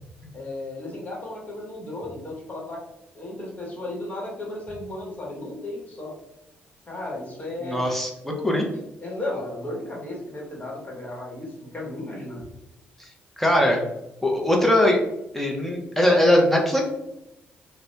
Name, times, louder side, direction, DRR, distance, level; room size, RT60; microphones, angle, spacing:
voice 1, 0.3-2.8 3.1-6.2 6.9-7.8 8.5-8.7 9.0-12.4, left 2 dB, 30° left, -2 dB, 1.4 m, -34 dB
voice 2, 7.6-8.7 13.4-13.8 14.2-15.0 15.3-16.8, left 1 dB, 5° left, 0 dB, 0.9 m, -20 dB
2.6 x 2.3 x 3.3 m, 0.89 s
hypercardioid pair, 45°, 5 cm